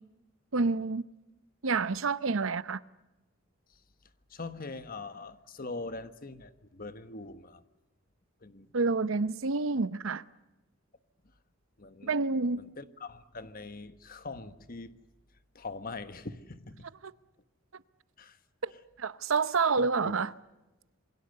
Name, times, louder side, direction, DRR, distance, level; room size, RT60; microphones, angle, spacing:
voice 1, 0.5-1.0 1.6-2.8 8.7-10.2 12.0-12.6 18.6-18.7 19.0-20.3, right 4 dB, 75° right, 0.8 m, -28 dB
voice 2, 4.3-7.6 8.4-8.7 11.8-12.2 12.6-15.0 15.5-16.9 18.2-18.4 19.8-20.1, left 3 dB, 45° left, 1.3 m, -42 dB
27.5 x 23.5 x 6.8 m
head